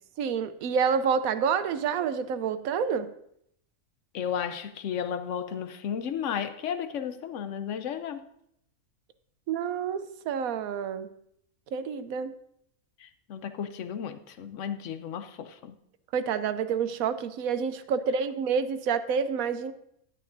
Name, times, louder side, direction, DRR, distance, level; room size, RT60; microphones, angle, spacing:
voice 1, 0.2-3.1 9.5-11.1 11.7-12.3 16.1-19.7, right 6 dB, 80° right, 1.1 m, -28 dB
voice 2, 4.1-8.2 13.0-15.7, left 8 dB, 65° left, 0.9 m, -34 dB
11.0 x 10.5 x 2.6 m
omnidirectional pair, 1.5 m